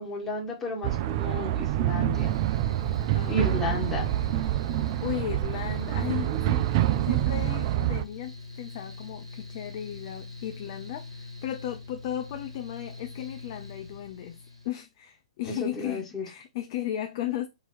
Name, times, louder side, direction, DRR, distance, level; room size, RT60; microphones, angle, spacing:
voice 1, 0.0-2.4 3.3-4.1 15.5-16.2, left 2 dB, 10° left, 1.4 m, -33 dB
sound 1, 0.8-8.0, right 14 dB, 45° right, 0.3 m, -26 dB
Mechanical fan, 2.1-14.7, left 3 dB, 90° right, 1.4 m, -43 dB
voice 2, 3.1-3.9 5.0-6.7 7.1-17.5, left 12 dB, 45° left, 0.4 m, -35 dB
3.8 x 2.8 x 4.3 m
figure-of-eight pair, 110°, 3 cm